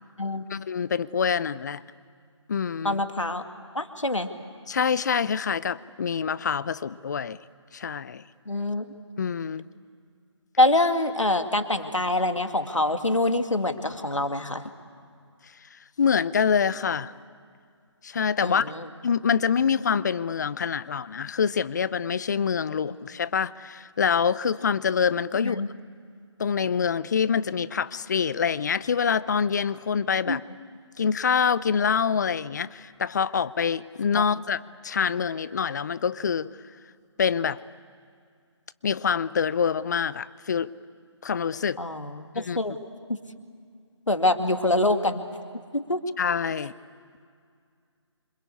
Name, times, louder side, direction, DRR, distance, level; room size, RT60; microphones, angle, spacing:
voice 1, 0.5-1.8 2.5-3.0 4.7-7.4 7.7-8.2 9.2-9.7 16.0-17.1 18.0-18.7 19.0-25.7 26.4-30.4 31.0-36.5 37.2-37.6 38.8-40.7 41.2-41.8 42.5-42.6 46.2-46.7, left 6 dB, 35° left, 0.6 m, -25 dB
voice 2, 2.8-3.4 3.7-4.3 8.5-8.9 10.6-14.7 18.4-18.9 25.4-25.7 30.3-30.4 34.1-34.2 41.8-42.7 43.1-43.2 44.1-45.2 45.7-46.0 46.6-46.7, left 2 dB, 90° left, 2.2 m, -25 dB
27.0 x 26.0 x 8.4 m
figure-of-eight pair, 155°, 16 cm